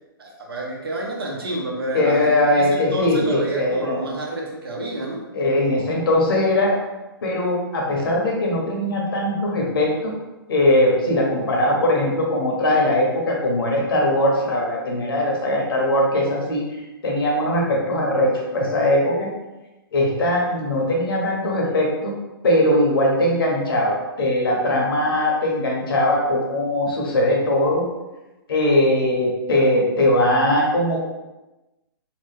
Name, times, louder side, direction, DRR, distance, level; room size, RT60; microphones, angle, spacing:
voice 1, 0.2-5.2, right 1 dB, 80° right, -2 dB, 1.0 m, -29 dB
voice 2, 1.9-4.0 5.3-6.8 7.2-10.1 10.5-19.3 19.9-22.1 22.4-27.8 28.5-31.0, left 1 dB, 70° left, -1 dB, 1.0 m, -20 dB
3.0 x 2.2 x 3.2 m, 1.1 s
hypercardioid pair, 135°, 12 cm